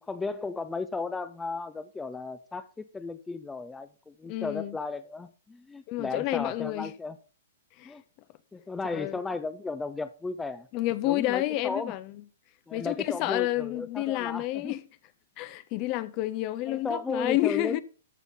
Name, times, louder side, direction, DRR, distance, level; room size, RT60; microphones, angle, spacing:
voice 1, 0.0-7.2 7.8-8.0 8.5-10.7 11.0-11.9 12.7-14.7 16.7-17.8, left 3 dB, 10° left, 0.7 m, -35 dB
voice 2, 4.2-4.7 5.9-6.9 7.8-7.9 8.9-9.2 10.7-12.1 12.7-14.8 15.4-17.8, left 16 dB, 40° left, 0.9 m, -29 dB
13.5 x 5.3 x 5.6 m
figure-of-eight pair, 115°, 0 cm